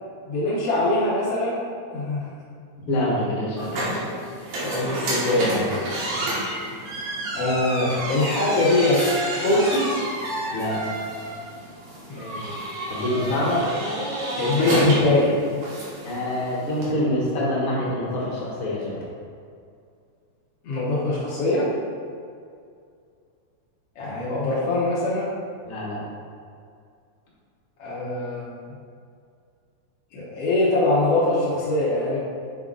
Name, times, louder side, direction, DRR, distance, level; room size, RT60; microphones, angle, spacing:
voice 1, 0.2-1.6 1.9-2.2 4.6-6.3 7.3-9.0 9.4-9.9 12.1-12.7 14.4-15.3 20.6-21.7 24.0-25.3 27.8-28.5 30.1-32.2, left 2 dB, 75° left, -8 dB, 1.4 m, -23 dB
voice 2, 2.9-4.0 10.5-10.8 12.9-13.6 16.0-19.0 25.6-26.0, left 1 dB, 50° left, -6 dB, 1.7 m, -26 dB
sound 1, 3.6-16.9, right 1 dB, 85° right, 3.2 m, -29 dB
7.0 x 3.6 x 3.7 m, 2.3 s
omnidirectional pair, 3.9 m